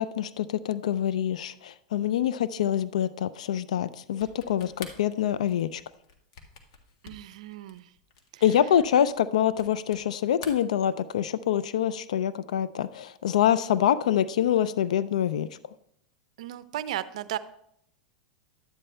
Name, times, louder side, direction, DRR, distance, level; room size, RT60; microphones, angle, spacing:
voice 1, 0.0-5.8 8.4-15.5, left 10 dB, 85° left, 16 dB, 0.4 m, -25 dB
sound 1, 4.1-10.1 10.3-11.4, left 5 dB, 65° left, 1.6 m, -47 dB
voice 2, 7.0-7.9 8.3-8.4 16.4-17.4, right 12 dB, 75° right, 14 dB, 0.5 m, -35 dB
11.5 x 8.9 x 3.3 m, 0.72 s
hypercardioid pair, 120°, 4 cm